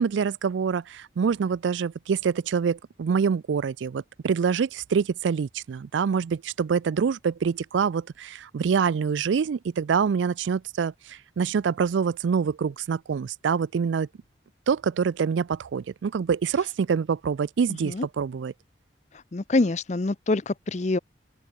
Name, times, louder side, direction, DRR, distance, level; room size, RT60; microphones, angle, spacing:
voice 1, 0.0-14.1 14.7-18.5, right 6 dB, 85° right, 0.4 m, -26 dB
voice 2, 19.3-21.0, left 2 dB, 40° left, 0.6 m, -25 dB
open air
head